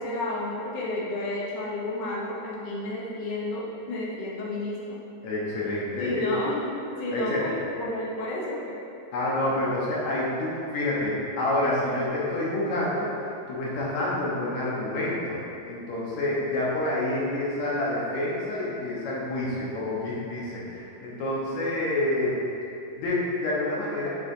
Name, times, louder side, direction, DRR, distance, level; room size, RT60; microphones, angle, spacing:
voice 1, 0.0-4.9 6.0-8.8, left 2 dB, 90° left, -5 dB, 0.9 m, -31 dB
voice 2, 5.2-6.3 7.1-7.4 9.1-15.4 15.7-22.5 23.0-24.1, left 1 dB, 70° left, -6 dB, 2.5 m, -28 dB
7.1 x 6.3 x 2.8 m, 2.7 s
omnidirectional pair, 3.4 m